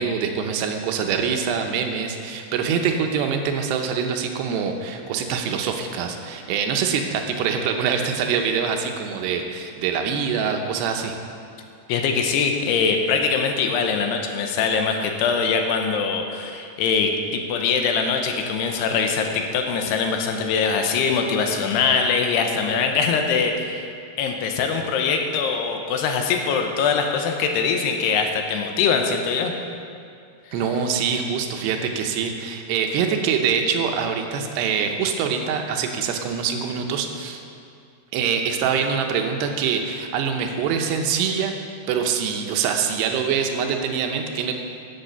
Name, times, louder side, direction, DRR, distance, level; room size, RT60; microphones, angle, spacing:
voice 1, 0.0-11.2 30.5-37.4 38.1-41.5 41.9-44.5, right 6 dB, 85° right, 4 dB, 3.0 m, -24 dB
voice 2, 11.9-23.9 24.2-29.5 30.4-30.6, left 5 dB, 85° left, 4 dB, 2.9 m, -22 dB
10.5 x 8.1 x 6.8 m, 2.4 s
omnidirectional pair, 4.8 m